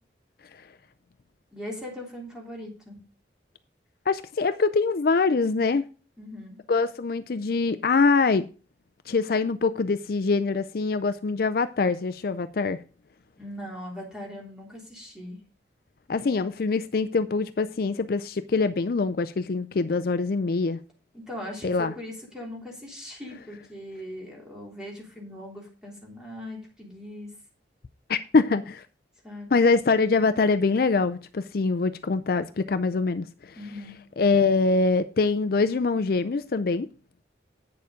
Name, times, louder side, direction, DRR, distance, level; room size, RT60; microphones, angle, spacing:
voice 1, 1.5-3.0 6.2-6.6 13.4-15.4 21.1-27.3 29.2-29.5 33.6-34.0, left 1 dB, 5° right, 3.3 m, -40 dB
voice 2, 4.1-5.8 6.7-8.5 9.1-12.8 16.1-20.8 21.6-21.9 28.1-28.8 29.5-33.6 34.2-36.9, left 4 dB, 55° left, 0.4 m, -24 dB
9.3 x 6.9 x 5.0 m
head